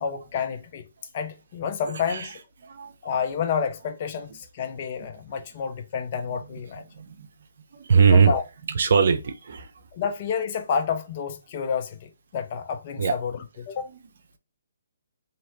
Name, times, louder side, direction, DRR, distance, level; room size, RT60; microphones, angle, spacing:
voice 1, 0.0-0.8 1.1-2.4 3.0-6.9 8.1-8.4 9.9-13.9, left 6 dB, 40° left, 0.6 m, -29 dB
voice 2, 1.9-3.2 6.2-7.3 7.9-8.4 8.7-9.7 13.0-13.2 13.9-14.0, right 6 dB, 60° right, 0.7 m, -22 dB
3.0 x 2.9 x 2.7 m
figure-of-eight pair, 140°, 0 cm